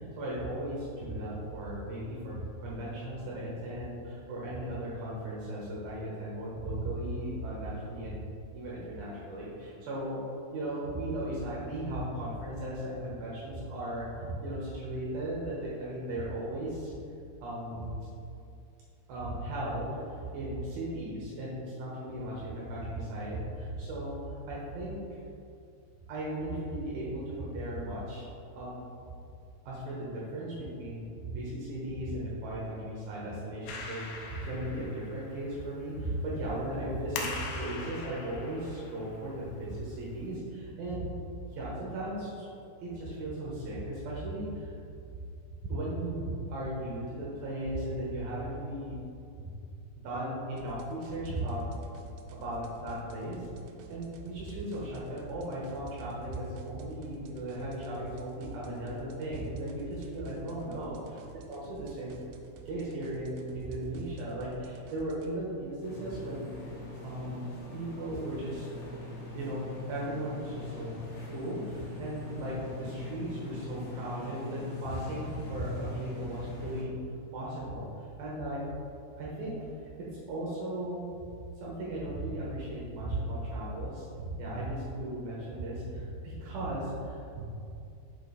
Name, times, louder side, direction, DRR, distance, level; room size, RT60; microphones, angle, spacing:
voice 1, 0.2-8.2 8.5-10.2 10.5-16.9 17.4-18.0 19.1-25.2 26.1-28.3 28.5-28.8 29.6-41.1 41.5-42.5 42.8-44.7 45.6-49.0 49.4-49.5 50.0-51.8 52.4-53.5 53.9-61.0 61.5-62.1 62.7-66.5 67.0-68.7 69.3-69.6 69.9-71.0 71.3-76.9 77.3-78.6 79.2-79.9 80.3-81.1 81.6-87.5, right 1 dB, 70° right, -6 dB, 2.8 m, -36 dB
Clapping, 33.7-40.4, left 3 dB, 85° left, 2.7 m, -43 dB
sound 1, 50.6-65.3, right 4 dB, 85° right, 2.7 m, -51 dB
sound 2, 65.8-76.8, left 3 dB, 60° left, 1.8 m, -42 dB
7.2 x 5.1 x 4.0 m, 2.5 s
omnidirectional pair, 4.9 m